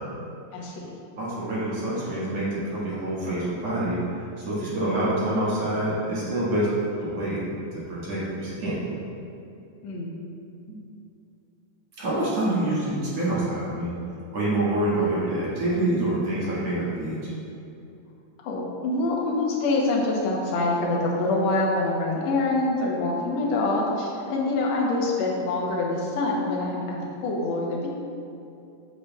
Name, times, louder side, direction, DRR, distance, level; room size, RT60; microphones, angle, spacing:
voice 1, 0.5-0.9 9.8-10.2 18.4-27.9, left 2 dB, 65° left, -2 dB, 1.8 m, -25 dB
voice 2, 1.2-4.0 4.4-6.7 7.0-7.4 7.7-8.8 10.7-10.8 12.0-14.0 14.3-17.3, right 1 dB, 50° right, -8 dB, 2.7 m, -26 dB
8.9 x 7.9 x 2.4 m, 2.7 s
omnidirectional pair, 4.1 m